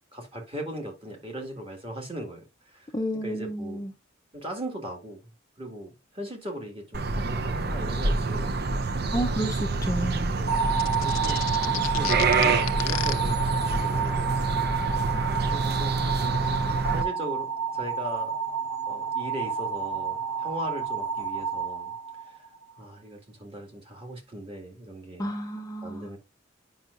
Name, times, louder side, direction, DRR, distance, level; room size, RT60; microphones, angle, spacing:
voice 1, 0.1-2.9 3.2-3.8 4.3-5.3 5.6-9.3 10.3-10.6 11.0-14.8 15.2-18.3 18.9-21.9 22.3-22.5 22.8-25.3 25.8-26.2, right 1 dB, 25° right, 1.8 m, -39 dB
voice 2, 2.9-3.9 9.1-10.3 25.2-26.1, equal, 15° left, 0.5 m, -31 dB
sound 1, 6.9-17.0, right 3 dB, 50° right, 0.6 m, -27 dB
sound 2, 10.5-22.6, right 6 dB, 75° right, 3.7 m, -30 dB
sound 3, 10.8-13.1, left 12 dB, 90° left, 0.6 m, -31 dB
9.0 x 5.5 x 2.4 m
head